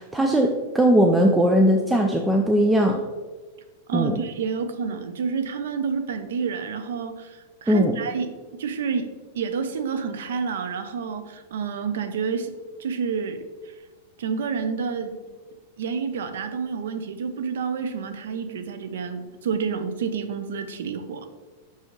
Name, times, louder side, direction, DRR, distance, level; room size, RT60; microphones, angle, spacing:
voice 1, 0.0-3.0 3.9-4.2 7.7-8.0, equal, 5° right, 2 dB, 0.4 m, -19 dB
voice 2, 3.9-8.3 8.6-9.1 9.3-12.5 12.8-13.4 14.2-15.2 15.8-21.3, right 6 dB, 85° right, 9 dB, 0.6 m, -29 dB
6.2 x 5.5 x 3.1 m, 1.3 s
supercardioid pair, 160°, 0 cm